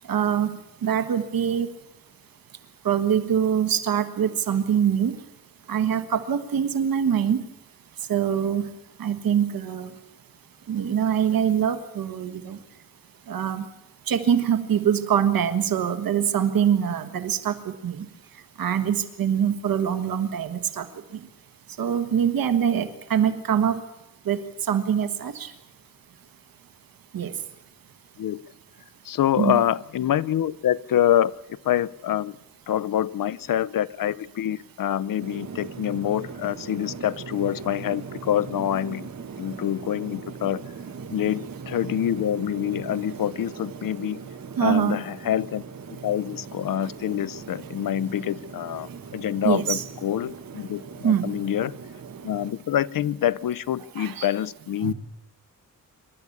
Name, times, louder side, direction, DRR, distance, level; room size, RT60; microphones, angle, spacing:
voice 1, 0.1-0.6 0.8-1.7 2.8-5.2 5.7-7.4 8.1-8.7 9.0-9.9 10.7-12.6 13.3-13.6 14.1-18.0 18.6-20.9 21.8-23.8 24.3-24.4 24.7-25.5 27.1-27.3 29.4-29.6 44.6-45.0 49.4-49.8 51.0-51.3 54.0-54.3 54.8-54.9, right 8 dB, 90° right, 11 dB, 1.4 m, -24 dB
voice 2, 29.0-31.3 31.6-32.4 32.7-39.1 39.4-40.6 41.1-44.2 44.6-45.6 45.9-51.7 52.2-54.9, left 11 dB, 75° left, 18 dB, 0.6 m, -26 dB
sound 1, 35.2-52.5, right 5 dB, 55° right, 1.8 m, -39 dB
27.0 x 12.0 x 8.6 m, 0.94 s
wide cardioid pair, 105°, 34 cm